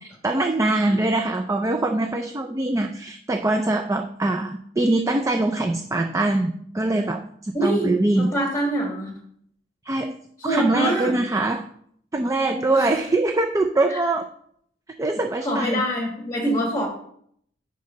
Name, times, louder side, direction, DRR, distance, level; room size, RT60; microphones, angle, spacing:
voice 1, 0.0-8.3 9.8-10.1 10.4-11.6 12.1-14.3 15.0-15.8, right 2 dB, 15° right, 5 dB, 0.4 m, -23 dB
voice 2, 7.5-7.9 8.2-9.1 10.4-11.2 12.7-12.9 13.9-14.0 15.4-16.9, right 1 dB, 15° left, 0 dB, 1.5 m, -24 dB
6.6 x 5.2 x 5.4 m, 0.66 s
head